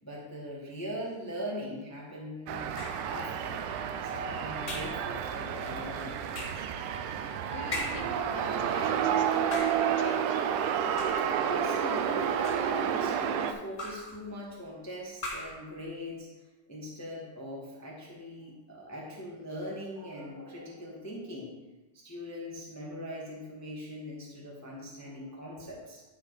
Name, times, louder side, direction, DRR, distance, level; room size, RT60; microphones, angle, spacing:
voice 1, 0.0-2.7 3.0-3.6 4.0-6.2 11.4-12.3 12.6-16.3 16.7-21.5 21.9-26.0, equal, 15° left, -3 dB, 0.6 m, -41 dB
sound 1, 2.5-13.5, right 8 dB, 85° right, 2.1 m, -30 dB
sound 2, 2.7-3.2 4.6-5.0 6.3-6.7 7.7-8.2 9.3-9.9 11.0-11.4 12.2-12.8 13.8-14.2 15.2-15.6, left 2 dB, 30° left, 1.3 m, -38 dB
voice 2, 6.9-10.4, left 6 dB, 80° left, 5 dB, 2.3 m, -46 dB
11.5 x 4.8 x 4.8 m, 1.1 s
omnidirectional pair, 3.6 m